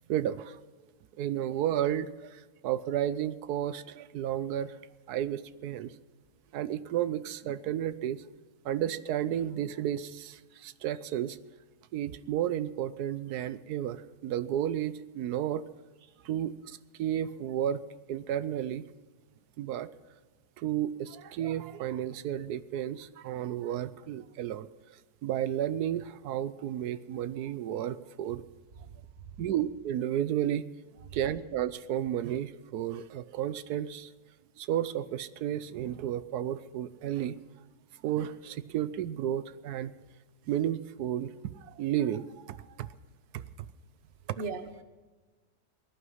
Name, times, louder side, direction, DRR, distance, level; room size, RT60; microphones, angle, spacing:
voice 1, 0.1-0.6 1.2-4.8 5.1-5.9 6.5-8.2 8.6-11.4 11.9-15.6 16.2-17.8 18.1-18.9 19.6-19.9 20.6-24.7 25.2-28.4 29.4-30.7 31.1-34.1 34.6-37.4 38.0-39.9 40.5-42.9 43.3-43.4, right 11 dB, 75° right, 1.2 m, -32 dB
voice 2, 28.8-29.4 31.1-31.2 44.3-44.8, right 4 dB, 40° right, 1.2 m, -41 dB
18.5 x 11.5 x 5.6 m
omnidirectional pair, 1.7 m